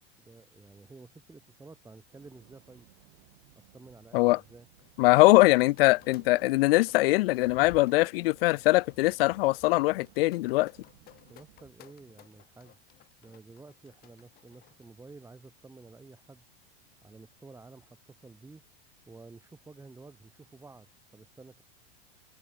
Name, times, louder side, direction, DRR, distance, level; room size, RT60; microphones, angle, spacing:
voice 1, 0.2-2.9 3.6-4.7 11.3-12.8 13.2-16.5 17.0-18.6 19.1-21.6, right 3 dB, 10° right, 7.1 m, -51 dB
sound 1, 2.1-11.7, right 24 dB, 60° right, 7.8 m, -61 dB
sound 2, 4.8-14.8, left 14 dB, 30° left, 1.4 m, -56 dB
voice 2, 5.0-10.7, left 21 dB, 65° left, 0.6 m, -22 dB
supercardioid pair, 145°, 31 cm